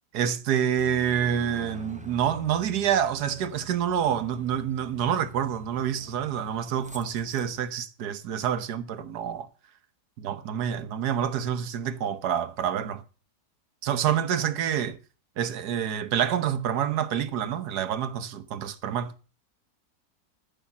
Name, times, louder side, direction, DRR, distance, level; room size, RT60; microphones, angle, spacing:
voice 1, 0.1-9.5 10.2-13.0 13.8-15.0 15.4-19.1, right 9 dB, 85° right, 1.5 m, -27 dB
Aircraft, 0.8-7.6, left 1 dB, 5° right, 0.7 m, -48 dB
13.0 x 5.8 x 7.1 m
omnidirectional pair, 1.7 m